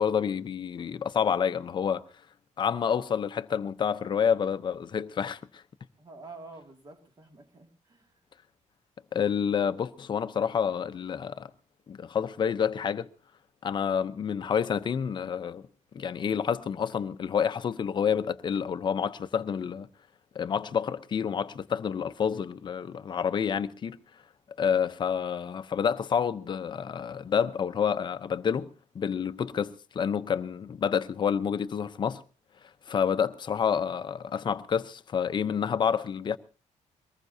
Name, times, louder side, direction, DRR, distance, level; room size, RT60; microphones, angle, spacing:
voice 1, 0.0-2.0 2.6-5.6 9.1-11.5 11.9-13.1 13.6-15.6 15.9-19.9 20.3-24.0 24.6-32.2 32.9-36.4, left 7 dB, 35° left, 0.7 m, -28 dB
voice 2, 6.0-8.2, right 3 dB, 30° right, 2.3 m, -48 dB
23.0 x 19.5 x 2.7 m
cardioid pair, 165°, 13 cm